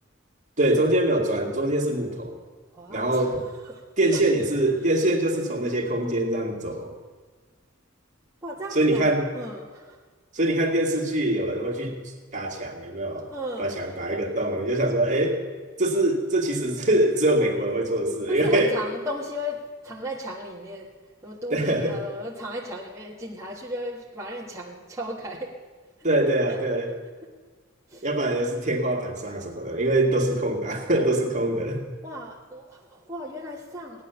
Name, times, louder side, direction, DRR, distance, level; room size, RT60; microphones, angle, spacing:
voice 1, 0.6-2.4 2.9-3.4 4.0-6.9 8.7-9.3 10.3-12.0 12.3-13.3 13.6-15.4 15.8-18.7 21.5-22.0 26.0-27.0 28.0-31.8, right 1 dB, 40° right, 1 dB, 2.1 m, -24 dB
voice 2, 2.7-3.2 3.7-3.8 4.1-4.2 8.4-9.1 9.3-10.0 13.3-13.9 18.3-20.9 21.2-25.6 27.9-28.0 32.0-34.0, equal, 15° right, -5 dB, 1.4 m, -35 dB
17.0 x 10.5 x 7.0 m, 1.4 s
head